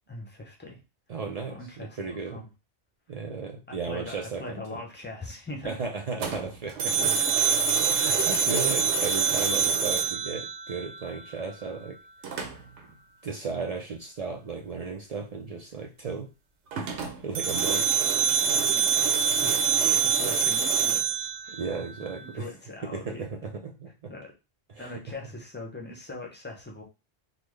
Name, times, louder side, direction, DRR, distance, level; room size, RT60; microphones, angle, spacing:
voice 1, 0.1-0.8 1.4-2.5 3.7-5.8 7.0-7.6 18.7-19.0 19.4-23.3 24.1-24.3 24.8-26.8, left 2 dB, 10° left, -1 dB, 0.6 m, -42 dB
voice 2, 1.1-2.4 3.1-4.8 5.6-7.1 7.8-12.0 13.2-16.3 16.8-17.0 17.2-17.9 21.5-22.5 22.8-24.1 24.8-25.0, right 4 dB, 55° right, 2 dB, 0.4 m, -35 dB
sound 1, 6.2-11.2 12.2-12.8 16.7-22.2, right 6 dB, 90° right, 1.0 m, -25 dB
3.9 x 2.0 x 3.1 m, 0.28 s
omnidirectional pair, 1.1 m